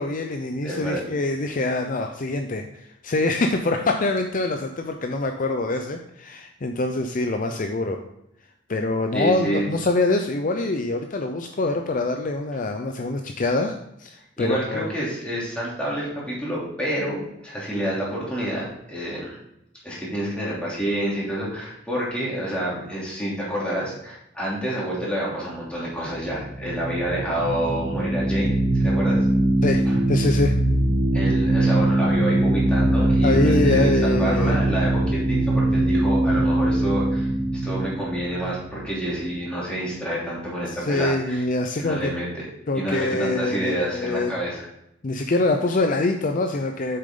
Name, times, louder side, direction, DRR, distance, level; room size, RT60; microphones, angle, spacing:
voice 1, 0.0-8.0 8.7-14.9 29.6-30.6 33.2-34.6 38.4-38.5 40.6-42.1 42.7-44.3 45.0-47.0, left 2 dB, 45° left, 5 dB, 0.5 m, -24 dB
voice 2, 0.6-1.0 9.1-9.6 14.4-19.3 19.8-29.3 29.9-30.0 31.1-41.4 41.8-42.4 42.7-44.7, right 1 dB, 5° left, -6 dB, 3.0 m, -28 dB
sound 1, 26.2-39.4, right 1 dB, 80° right, 2.0 m, -22 dB
7.7 x 6.6 x 3.8 m, 0.81 s
head